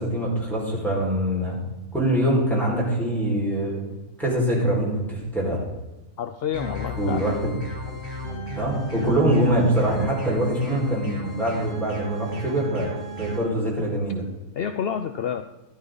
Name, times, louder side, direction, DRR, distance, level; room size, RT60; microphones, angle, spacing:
voice 1, 0.0-1.6 1.9-3.8 4.2-5.6 7.0-7.6 8.6-12.9 13.2-14.2, right 1 dB, ahead, -5 dB, 5.0 m, -23 dB
voice 2, 6.2-7.3 14.6-15.4, left 8 dB, 60° left, 9 dB, 0.6 m, -28 dB
sound 1, 6.5-13.4, right 1 dB, 50° right, 5.3 m, -35 dB
13.0 x 12.0 x 4.0 m, 1.1 s
omnidirectional pair, 1.6 m